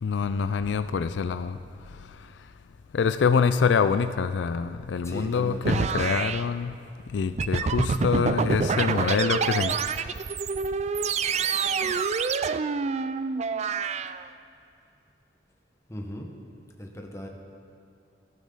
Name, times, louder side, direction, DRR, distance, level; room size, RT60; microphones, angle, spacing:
voice 1, 0.0-1.6 2.9-6.7 7.1-9.8, left 6 dB, 80° left, 12 dB, 0.4 m, -25 dB
voice 2, 5.0-6.1 15.9-16.3 16.8-17.3, equal, 15° left, 1 dB, 1.3 m, -37 dB
sound 1, 5.6-6.4 7.4-14.2, right 5 dB, 40° right, 0.3 m, -27 dB
14.5 x 14.0 x 4.0 m, 2.6 s
head